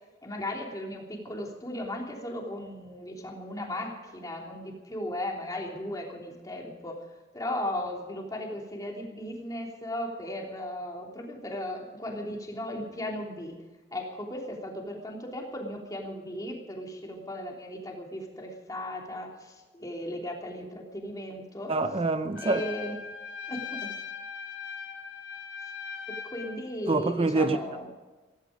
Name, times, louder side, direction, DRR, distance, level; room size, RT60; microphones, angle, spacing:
voice 1, 0.2-7.0 7.3-13.6 13.9-21.7 22.4-23.0 23.5-23.9 26.2-27.9, left 1 dB, 20° left, 3.2 m, -36 dB
voice 2, 21.7-22.6 26.9-27.6, right 3 dB, 30° right, 0.6 m, -25 dB
Trumpet, 22.3-26.6, left 6 dB, 85° left, 3.2 m, -39 dB
16.5 x 16.0 x 5.2 m
head